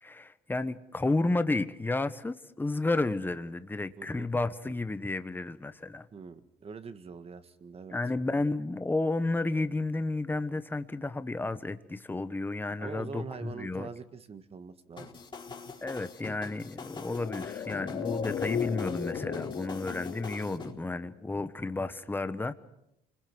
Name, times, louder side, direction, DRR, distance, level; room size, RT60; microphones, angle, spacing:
voice 1, 0.0-6.1 7.9-13.9 15.8-22.5, left 2 dB, 10° left, 1.2 m, -32 dB
voice 2, 4.0-4.3 6.1-8.0 12.8-15.1, right 5 dB, 35° right, 1.8 m, -43 dB
sound 1, 15.0-20.7, left 4 dB, 30° left, 4.1 m, -44 dB
sound 2, 16.9-21.5 21.7-21.8, left 7 dB, 60° left, 2.3 m, -36 dB
29.0 x 21.5 x 6.2 m
cardioid pair, 110°, 17 cm